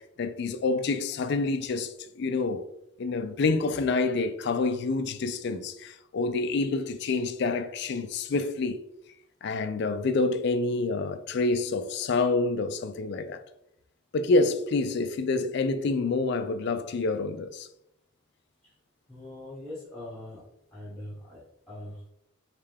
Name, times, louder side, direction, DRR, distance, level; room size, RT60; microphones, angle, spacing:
voice 1, 0.0-2.6 3.0-8.8 9.4-13.4 14.1-17.7, left 3 dB, 55° left, 0.4 m, -27 dB
voice 2, 19.1-20.4 20.7-22.1, left 1 dB, 5° left, 1.1 m, -42 dB
3.5 x 3.3 x 3.4 m
head